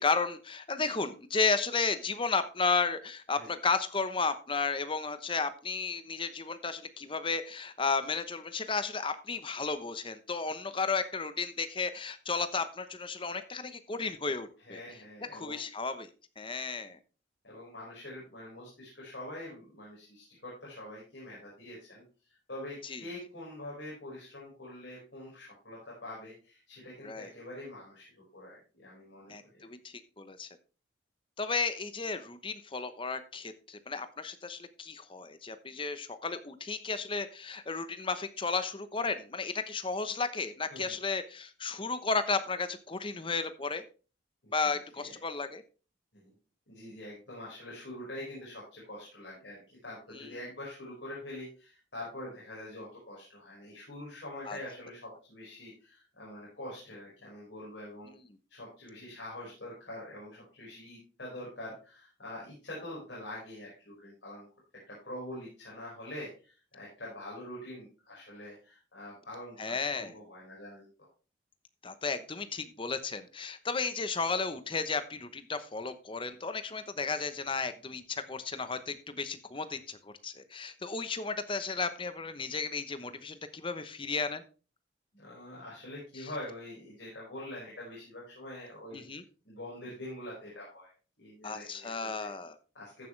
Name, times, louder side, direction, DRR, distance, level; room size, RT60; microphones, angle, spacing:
voice 1, 0.0-14.8 15.3-16.1 16.4-17.0 22.8-23.0 27.0-27.3 29.3-30.5 31.4-43.8 44.5-45.6 50.1-50.3 54.5-54.6 58.1-58.2 69.6-70.1 71.8-84.4 86.2-86.3 88.9-89.2 91.4-92.6, left 4 dB, 30° left, 11 dB, 0.9 m, -33 dB
voice 2, 14.6-15.6 17.4-22.0 22.5-29.7 40.7-40.9 44.4-45.1 46.1-46.3 46.7-58.1 58.5-64.5 64.9-71.1 85.1-89.0 89.5-90.9 91.2-92.3 92.7-93.0, left 1 dB, 70° left, -5 dB, 5.4 m, -45 dB
14.5 x 7.4 x 3.3 m, 0.35 s
head